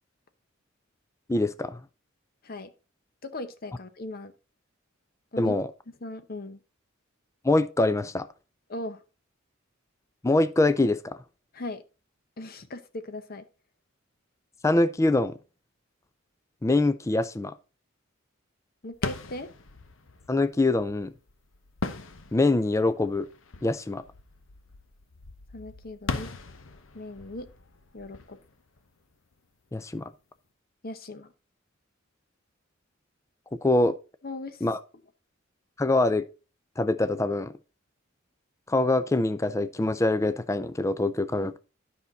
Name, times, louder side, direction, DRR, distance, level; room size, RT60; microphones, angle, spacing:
voice 1, 1.3-1.8 5.4-5.7 7.4-8.3 10.2-11.2 14.6-15.4 16.6-17.5 20.3-21.1 22.3-23.3 23.6-24.0 29.7-30.1 33.6-34.0 34.6-34.8 35.8-36.3 36.8-37.5 38.7-41.6, left 2 dB, 15° left, 0.4 m, -24 dB
voice 2, 3.2-4.3 5.3-5.6 6.0-6.6 8.7-9.0 11.5-11.8 12.4-13.4 18.8-19.5 25.5-26.3 26.9-27.5 27.9-28.4 30.8-31.3 34.2-34.6, left 2 dB, 50° left, 0.9 m, -38 dB
sound 1, 18.9-29.5, left 3 dB, 70° left, 0.9 m, -40 dB
10.5 x 5.7 x 3.9 m
head